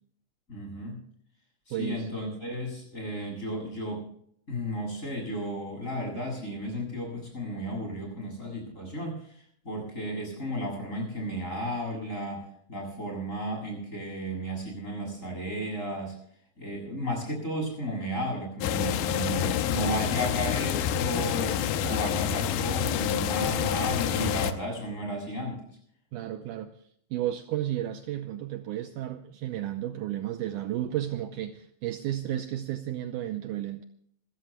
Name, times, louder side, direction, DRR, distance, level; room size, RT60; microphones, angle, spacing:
voice 1, 0.5-1.0 1.7-4.1 4.5-16.1 16.6-25.7, equal, 20° left, 0 dB, 7.9 m, -34 dB
voice 2, 1.7-2.1 21.8-22.0 26.1-26.7 27.1-33.8, right 12 dB, 75° right, 7 dB, 2.0 m, -33 dB
sound 1, 18.6-24.5, left 9 dB, 90° left, 2.7 m, -28 dB
26.5 x 16.0 x 2.3 m, 0.67 s
omnidirectional pair, 4.1 m